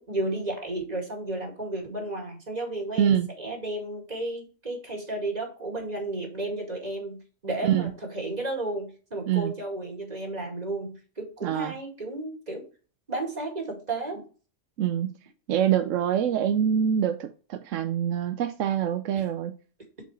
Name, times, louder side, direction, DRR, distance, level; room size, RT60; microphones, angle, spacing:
voice 1, 0.0-12.6 13.1-14.2 19.2-19.3, right 2 dB, 35° right, 2.3 m, -33 dB
voice 2, 3.0-3.3 7.6-7.9 9.3-9.5 11.4-11.7 14.8-15.1 15.5-19.5, right 9 dB, 85° right, 1.0 m, -25 dB
8.0 x 4.6 x 3.1 m
omnidirectional pair, 1.3 m